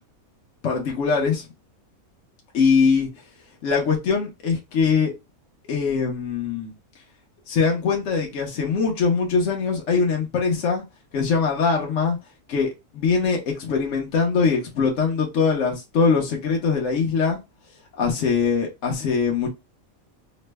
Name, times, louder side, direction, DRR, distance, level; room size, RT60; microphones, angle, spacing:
voice 1, 0.6-1.4 2.5-3.1 3.6-5.1 5.7-6.7 7.5-10.8 11.1-12.2 12.5-17.4 18.0-19.5, left 5 dB, 60° left, 1.1 m, -22 dB
3.1 x 2.1 x 3.2 m
omnidirectional pair, 1.5 m